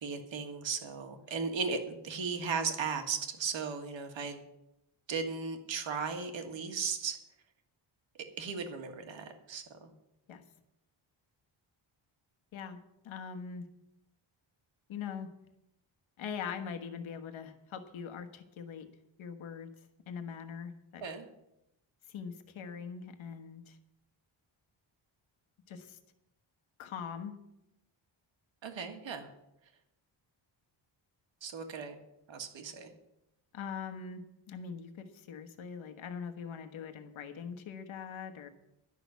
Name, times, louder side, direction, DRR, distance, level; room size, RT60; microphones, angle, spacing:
voice 1, 0.0-4.5 5.1-7.2 8.4-9.9 21.0-21.3 28.6-29.3 31.4-32.0 32.3-32.9, right 5 dB, 65° right, 5 dB, 1.8 m, -36 dB
voice 2, 13.0-13.7 14.9-15.3 16.2-18.9 19.2-19.7 20.1-21.0 22.1-23.8 25.7-26.0 26.8-27.3 33.5-38.5, left 6 dB, 70° left, 7 dB, 1.3 m, -42 dB
11.5 x 6.4 x 9.3 m, 0.87 s
wide cardioid pair, 170°, 49 cm